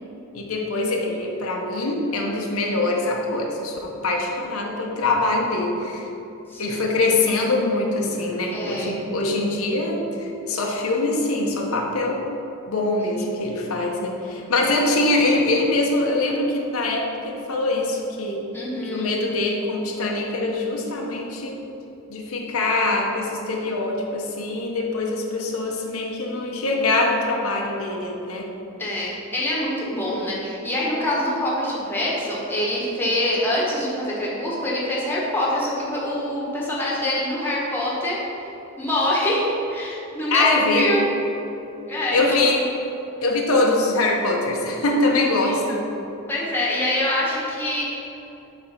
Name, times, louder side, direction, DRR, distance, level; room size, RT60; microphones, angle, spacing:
voice 1, 0.3-6.1 6.6-12.2 12.7-18.4 18.9-21.6 22.1-28.5 40.3-40.9 42.1-42.6 43.2-45.9, left 2 dB, 85° left, 0 dB, 0.8 m, -23 dB
voice 2, 8.5-8.9 13.1-13.3 18.5-19.1 28.8-38.5 38.8-40.5 40.7-41.1 41.9-42.5 45.4-45.6 46.3-47.8, left 1 dB, 10° left, -6 dB, 1.2 m, -25 dB
6.9 x 3.4 x 5.7 m, 2.9 s
head